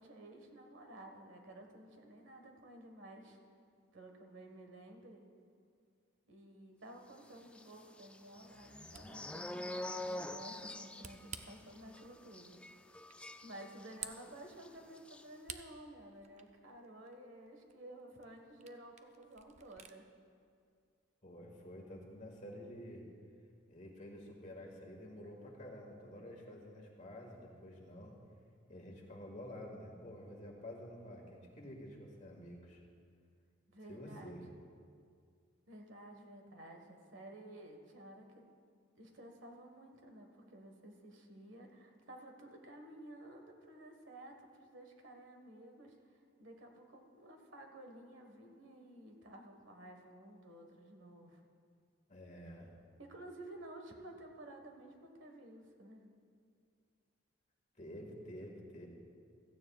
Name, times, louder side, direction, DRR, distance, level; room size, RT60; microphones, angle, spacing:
voice 1, 0.0-3.4 3.9-5.3 6.3-12.6 12.9-13.0 13.4-20.2 33.7-34.3 35.7-38.5 38.9-51.4 53.0-56.1, right 1 dB, 85° right, 4 dB, 1.5 m, -53 dB
sound 1, 7.5-14.2 14.5-14.7 15.0-15.2, left 1 dB, 5° left, 0.3 m, -46 dB
Camera, 8.8-20.0, right 7 dB, 40° right, 0.6 m, -55 dB
voice 2, 21.2-23.1 23.7-28.2 28.7-32.8 33.9-34.4 52.1-52.7 57.8-58.9, equal, 40° left, 0 dB, 1.9 m, -50 dB
16.0 x 14.5 x 2.4 m, 2.2 s
head